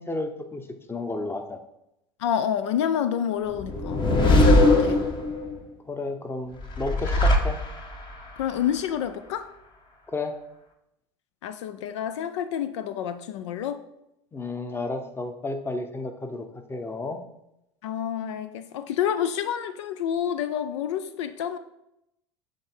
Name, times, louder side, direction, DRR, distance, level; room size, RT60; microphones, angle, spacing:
voice 1, 0.0-1.6 5.9-7.6 10.1-10.3 14.3-17.2, left 2 dB, 15° left, 0.8 m, -32 dB
voice 2, 2.2-4.0 4.3-5.0 8.4-9.5 11.4-13.8 17.8-21.6, left 9 dB, 80° left, 0.4 m, -28 dB
sound 1, 3.6-5.6 6.6-8.1, left 2 dB, 30° left, 1.1 m, -20 dB
7.5 x 3.5 x 4.4 m
hypercardioid pair, 80°, 15 cm